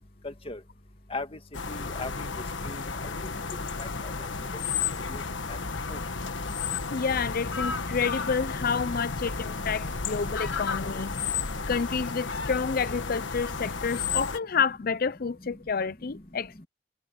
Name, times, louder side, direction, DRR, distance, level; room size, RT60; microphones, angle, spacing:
voice 1, 0.2-0.6 1.1-1.4 1.7-2.3 2.6-3.1 3.8-4.1 5.1-5.2 5.9-6.0, left 3 dB, 30° left, 1.9 m, -38 dB
sound 1, 1.5-14.4, left 5 dB, 80° left, 1.4 m, -32 dB
voice 2, 6.9-11.1 11.7-16.7, left 5 dB, 50° left, 0.6 m, -29 dB
head